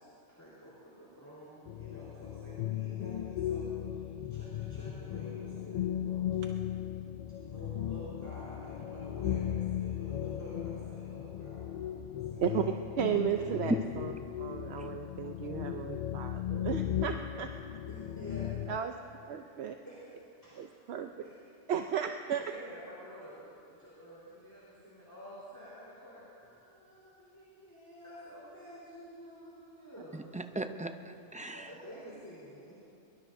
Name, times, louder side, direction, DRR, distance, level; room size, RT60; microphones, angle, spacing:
voice 1, 0.0-6.4 7.5-11.9 12.2-12.6 17.9-18.7 19.3-19.4 19.8-20.9 21.2-21.5 22.4-26.2 26.5-30.3 31.5-32.8, equal, 15° left, -9 dB, 4.1 m, -50 dB
sound 1, 1.7-18.8, left 10 dB, 75° left, 0.3 m, -36 dB
voice 2, 13.0-14.1 14.4-17.5 18.7-18.9 19.3-19.7 20.6-21.1 21.7-22.4, right 8 dB, 65° right, 5 dB, 0.9 m, -34 dB
voice 3, 30.1-31.7, right 2 dB, 10° right, 7 dB, 0.3 m, -40 dB
23.5 x 22.5 x 2.7 m, 2.5 s
omnidirectional pair, 1.2 m